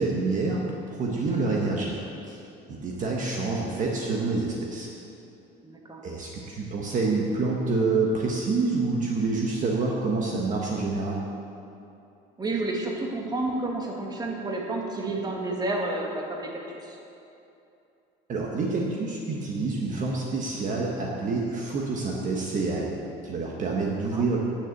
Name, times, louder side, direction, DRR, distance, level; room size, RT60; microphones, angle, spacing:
voice 1, 0.0-2.4 2.7-4.9 6.0-11.2 18.3-24.4, right 3 dB, 40° right, -2 dB, 1.4 m, -27 dB
voice 2, 5.6-6.1 12.4-17.0 23.9-24.3, right 2 dB, 20° right, 0 dB, 1.8 m, -31 dB
9.9 x 6.9 x 7.9 m, 2.7 s
cardioid pair, 120°, 19 cm